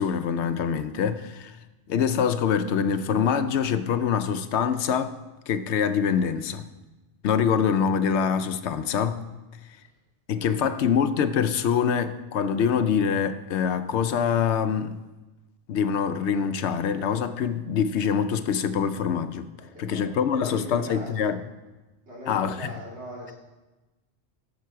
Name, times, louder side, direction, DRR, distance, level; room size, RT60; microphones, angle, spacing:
voice 1, 0.0-1.6 1.9-5.2 5.5-6.7 7.2-9.2 10.3-15.0 15.7-19.5 19.8-21.4 22.3-22.7, left 7 dB, 75° left, 0.9 m, -25 dB
voice 2, 19.6-20.1 20.3-21.3 22.1-23.3, equal, 70° right, 3.0 m, -40 dB
11.5 x 6.9 x 4.6 m
omnidirectional pair, 1.2 m